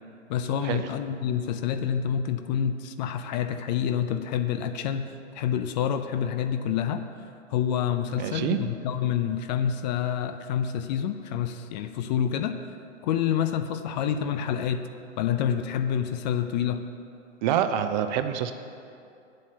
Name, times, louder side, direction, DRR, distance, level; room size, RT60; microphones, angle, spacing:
voice 1, 0.3-5.1 5.4-7.0 7.5-12.6 13.0-14.8 15.2-16.8, left 9 dB, 35° left, 9 dB, 0.5 m, -27 dB
voice 2, 8.2-8.6 17.4-18.5, right 9 dB, 40° right, 9 dB, 0.6 m, -26 dB
8.5 x 7.7 x 7.6 m, 2.5 s
hypercardioid pair, 130°, 37 cm